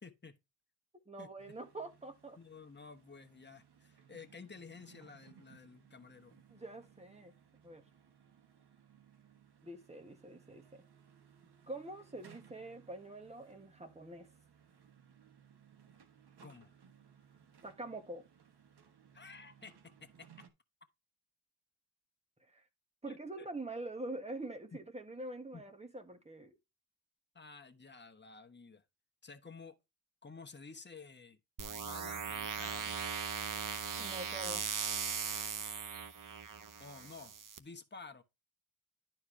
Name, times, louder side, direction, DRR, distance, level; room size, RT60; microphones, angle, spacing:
voice 1, 0.0-0.4 1.2-1.3 2.4-6.4 16.4-16.7 19.1-20.4 23.1-23.5 24.7-24.8 25.5-25.6 27.3-28.8 29.2-29.8 30.2-31.4 31.7-33.0 36.8-37.3 37.6-38.2, left 4 dB, 25° left, 1.2 m, -52 dB
voice 2, 1.1-2.4 6.5-7.3 7.6-7.8 9.6-10.8 11.7-14.3 17.6-18.3 22.4-22.6 23.0-26.6 34.0-34.6, right 2 dB, 15° right, 1.7 m, -45 dB
sound 1, 1.4-20.5, right 7 dB, 80° right, 1.4 m, -63 dB
sound 2, 31.6-37.6, right 6 dB, 55° right, 0.8 m, -39 dB
11.5 x 4.5 x 3.3 m
wide cardioid pair, 115°, 39 cm